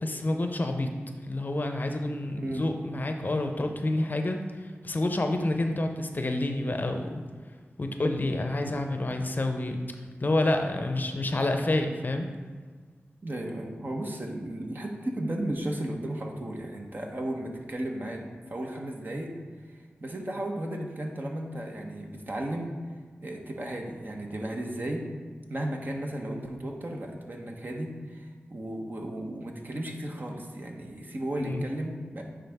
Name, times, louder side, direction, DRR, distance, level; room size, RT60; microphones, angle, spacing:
voice 1, 0.0-0.9 1.2-4.4 4.8-7.2 7.8-9.8 10.2-12.3 31.4-31.6, left 2 dB, 45° left, 5 dB, 0.6 m, -28 dB
voice 2, 2.4-2.7 13.2-19.3 19.7-22.7 23.2-25.1 25.5-32.2, right 1 dB, 50° right, 1 dB, 1.0 m, -34 dB
9.5 x 3.8 x 3.5 m, 1.5 s
cardioid pair, 55°, 4 cm